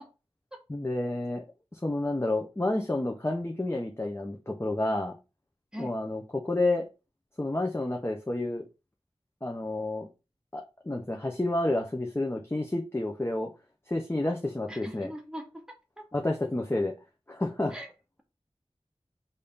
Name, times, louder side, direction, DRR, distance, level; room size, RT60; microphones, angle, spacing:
voice 1, 0.7-1.4 1.7-5.1 5.8-6.9 7.4-8.6 9.4-10.1 10.5-13.5 13.9-15.1 16.1-16.9 17.3-17.8, left 2 dB, 25° left, 1 dB, 0.7 m, -30 dB
voice 2, 14.7-15.4 16.0-16.1 17.7-17.9, equal, 5° right, 2 dB, 1.1 m, -40 dB
5.4 x 2.7 x 3.5 m, 0.29 s
wide cardioid pair, 45°, 11 cm